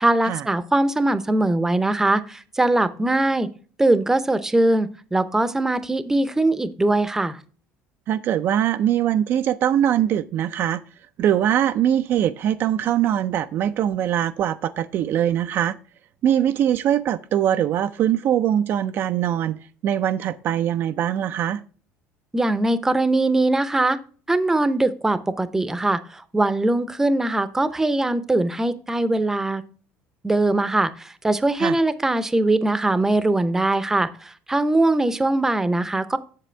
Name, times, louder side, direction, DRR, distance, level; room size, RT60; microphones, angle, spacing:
voice 1, 0.0-3.5 3.8-7.4 22.3-24.0 24.3-29.6 30.2-36.2, right 2 dB, 10° right, 0.7 m, -21 dB
voice 2, 8.1-10.8 11.2-15.8 16.2-21.6 31.6-31.8, right 10 dB, 50° right, 0.4 m, -22 dB
7.6 x 7.4 x 3.3 m
cardioid pair, 115°, 5 cm